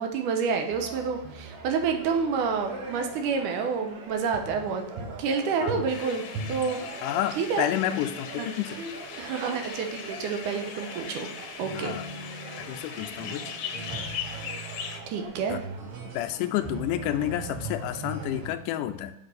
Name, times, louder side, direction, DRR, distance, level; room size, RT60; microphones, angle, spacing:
voice 1, 0.0-4.9 5.2-6.2 6.5-6.8 7.4-7.7 8.4-8.5 9.2-11.3 11.6-11.9 15.1-15.6, right 5 dB, 85° right, 4 dB, 2.4 m, -28 dB
sound 1, 0.7-18.5, right 3 dB, 60° right, 1.6 m, -40 dB
sound 2, 5.9-15.0, left 7 dB, 70° left, 1.8 m, -39 dB
voice 2, 7.0-8.8 11.7-12.1 12.7-13.5 13.9-14.0 15.5-15.6 16.1-19.1, left 12 dB, 85° left, 8 dB, 2.1 m, -30 dB
7.3 x 5.4 x 4.1 m, 0.85 s
omnidirectional pair, 3.6 m